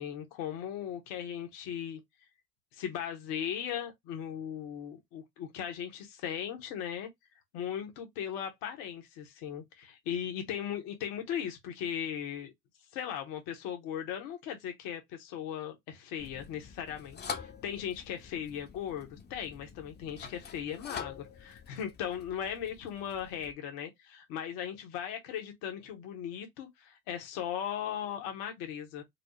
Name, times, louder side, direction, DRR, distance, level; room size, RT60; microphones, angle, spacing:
voice 1, 0.0-2.0 2.7-7.1 7.5-12.5 12.9-21.1 21.4-29.0, left 9 dB, 70° left, 1.1 m, -38 dB
sound 1, 16.2-23.5, left 6 dB, 25° left, 0.7 m, -46 dB
4.2 x 2.0 x 3.1 m
hypercardioid pair, 70°, 37 cm